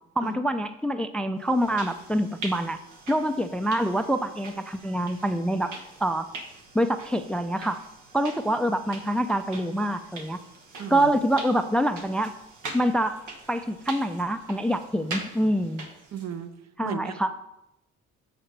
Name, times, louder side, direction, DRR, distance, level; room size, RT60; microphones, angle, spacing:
voice 1, 0.2-2.8 3.1-5.7 6.0-6.3 6.7-7.8 8.1-10.4 10.9-12.3 12.7-13.2 13.5-15.8 16.8-17.3, right 1 dB, 5° left, 10 dB, 0.3 m, -25 dB
sound 1, 1.4-16.4, right 3 dB, 80° right, 1.4 m, -43 dB
voice 2, 10.8-11.1 16.1-16.5 16.8-17.3, right 7 dB, 60° right, 9 dB, 0.8 m, -34 dB
6.6 x 4.5 x 6.5 m, 0.89 s
cardioid pair, 90°, 30 cm